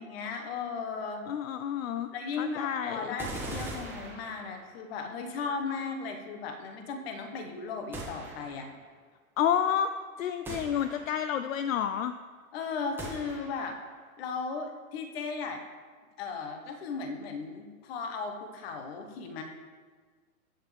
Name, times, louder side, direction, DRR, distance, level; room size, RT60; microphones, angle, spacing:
voice 1, 0.0-1.3 2.1-8.7 12.5-13.8 14.2-15.6 16.2-19.4, left 4 dB, 45° left, 4 dB, 1.6 m, -36 dB
voice 2, 1.3-2.1 2.4-3.1 9.4-9.9 10.2-12.1, left 9 dB, 65° left, 10 dB, 0.7 m, -29 dB
sound 1, 3.2-4.8 7.9-8.8 10.5-11.4 13.0-13.8, right 2 dB, 5° right, 1.7 m, -41 dB
14.0 x 7.3 x 3.5 m, 1.6 s
hypercardioid pair, 140°, 43 cm